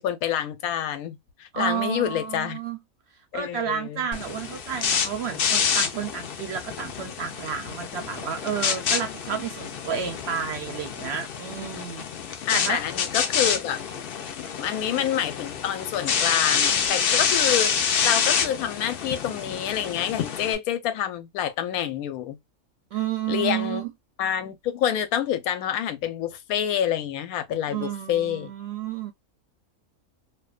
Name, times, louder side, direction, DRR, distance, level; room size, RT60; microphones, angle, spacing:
voice 1, 0.0-2.6 3.3-4.1 12.5-13.8 14.4-22.4 23.3-23.8 24.2-28.5, left 10 dB, 90° left, 1.0 m, -27 dB
voice 2, 1.5-2.8 3.3-12.0 12.5-12.8 22.9-23.9 27.7-29.1, right 8 dB, 65° right, 0.7 m, -31 dB
sound 1, 4.1-20.5, left 7 dB, 65° left, 0.5 m, -27 dB
2.5 x 2.2 x 2.3 m
omnidirectional pair, 1.5 m